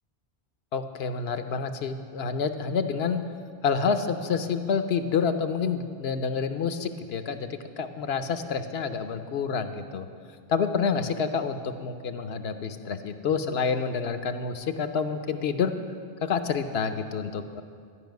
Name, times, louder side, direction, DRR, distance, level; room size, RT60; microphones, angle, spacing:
voice 1, 0.7-3.2 3.6-7.5 7.8-10.1 10.5-15.7 16.2-17.6, left 5 dB, 80° left, 9 dB, 0.9 m, -28 dB
12.5 x 5.6 x 9.1 m, 2.2 s
omnidirectional pair, 1.0 m